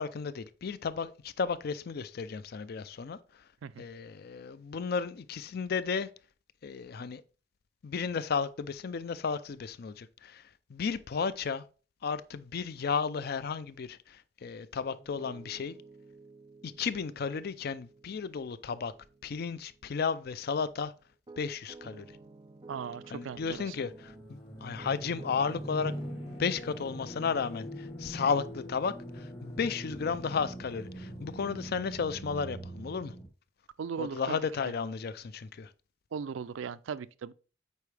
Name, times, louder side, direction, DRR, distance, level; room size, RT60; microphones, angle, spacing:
voice 1, 0.0-3.2 3.8-6.1 6.6-7.2 7.8-10.4 10.7-11.6 12.0-15.8 16.6-18.9 19.2-20.9 21.4-22.0 23.1-24.1 24.6-25.9 26.3-33.1 34.0-35.7, left 5 dB, 55° left, 0.4 m, -33 dB
Piano, 15.0-24.3 24.8-26.8, right 3 dB, 25° right, 0.5 m, -53 dB
voice 2, 22.7-23.8 33.8-34.4 36.1-37.3, right 6 dB, 85° right, 0.4 m, -38 dB
sound 1, 23.3-33.3, equal, 25° left, 1.4 m, -42 dB
8.3 x 4.6 x 3.3 m
head